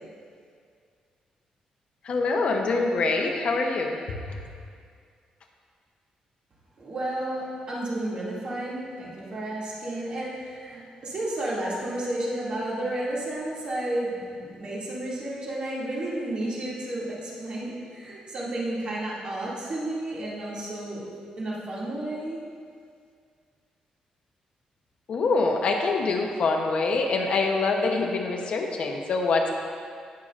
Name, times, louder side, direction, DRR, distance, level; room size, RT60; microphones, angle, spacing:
voice 1, 2.0-4.0 4.3-4.4 25.1-29.5, left 3 dB, 55° left, 2 dB, 0.9 m, -25 dB
voice 2, 6.8-21.1 21.4-22.4, right 1 dB, 45° right, -6 dB, 2.4 m, -32 dB
18.0 x 6.5 x 2.5 m, 2.1 s
cardioid pair, 140°, 2 cm